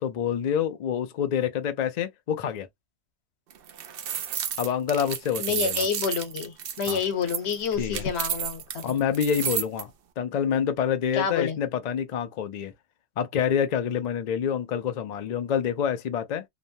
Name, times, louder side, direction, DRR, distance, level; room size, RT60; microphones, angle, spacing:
voice 1, 0.0-2.7 4.6-5.9 6.9-7.0 7.8-8.0 8.8-9.9 10.2-12.7 13.2-16.5, left 8 dB, 55° left, 0.4 m, -27 dB
sound 1, 3.5-9.8, right 9 dB, 65° right, 0.7 m, -32 dB
voice 2, 5.4-8.9 11.1-11.6, left 6 dB, 75° left, 1.1 m, -28 dB
3.0 x 2.1 x 2.6 m
omnidirectional pair, 1.1 m